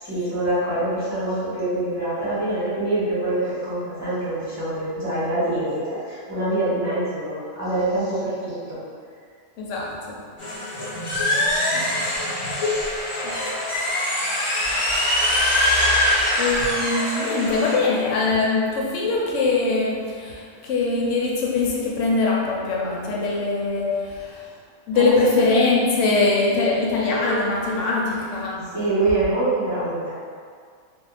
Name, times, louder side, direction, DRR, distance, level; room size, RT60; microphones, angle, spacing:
voice 1, 0.0-8.8 24.9-25.1 28.7-30.1, right 2 dB, 15° right, -12 dB, 0.9 m, -25 dB
voice 2, 9.6-10.2 11.7-11.9 13.2-13.5 15.2-15.4 15.9-24.5 24.9-28.8, left 3 dB, 75° left, -3 dB, 0.9 m, -22 dB
sound 1, 10.4-17.7, left 1 dB, 40° left, 0.4 m, -23 dB
2.5 x 2.1 x 3.2 m, 2.1 s
omnidirectional pair, 1.3 m